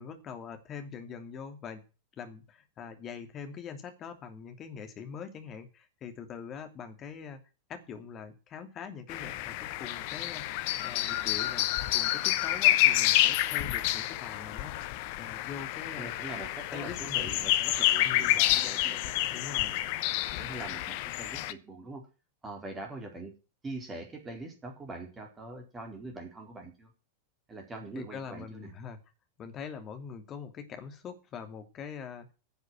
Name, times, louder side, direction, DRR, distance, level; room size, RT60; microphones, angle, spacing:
voice 1, 0.0-1.8 2.2-7.4 7.7-16.2 16.7-17.3 18.0-18.4 19.3-19.8 27.9-29.0 29.4-32.3, left 6 dB, 30° left, 6 dB, 2.7 m, -43 dB
sound 1, 9.1-21.5, left 15 dB, 45° left, 0.9 m, -28 dB
voice 2, 16.0-19.7 20.4-22.1 22.4-23.4 23.6-26.9 27.5-28.7, right 2 dB, 15° right, 2 dB, 4.3 m, -43 dB
10.5 x 8.1 x 7.7 m, 0.33 s
figure-of-eight pair, 90°, 0 cm